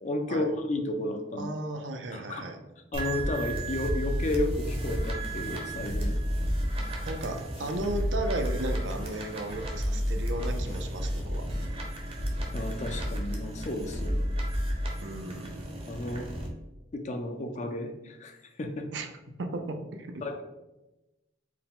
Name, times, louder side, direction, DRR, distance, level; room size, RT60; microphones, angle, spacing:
voice 1, 0.0-1.5 2.1-2.5 2.9-6.2 12.5-14.3 15.9-16.3 16.9-18.9 20.2-20.4, left 1 dB, 40° left, 6 dB, 0.4 m, -33 dB
voice 2, 1.4-2.6 7.1-11.4 15.0-15.6 18.9-19.1 19.4-20.3, right 2 dB, 80° right, 6 dB, 0.5 m, -35 dB
sound 1, 2.9-16.5, equal, 30° right, 0.7 m, -32 dB
sound 2, 4.9-10.9, equal, 85° left, 1.2 m, -45 dB
4.5 x 2.2 x 3.6 m, 0.99 s
head